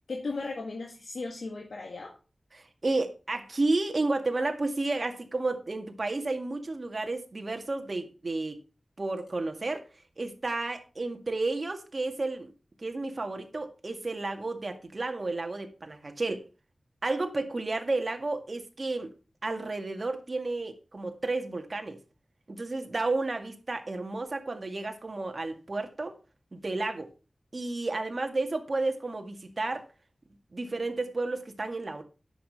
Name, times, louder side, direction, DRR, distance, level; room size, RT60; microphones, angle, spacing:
voice 1, 0.1-2.1, left 3 dB, 85° left, 1.8 m, -36 dB
voice 2, 2.5-8.6 9.0-9.9 10.2-12.5 12.8-16.4 17.0-19.1 19.4-22.0 22.5-26.2 26.5-27.1 27.5-29.8 30.5-32.0, right 2 dB, 55° right, 2.0 m, -32 dB
10.0 x 7.0 x 5.7 m
cardioid pair, 45°, 0 cm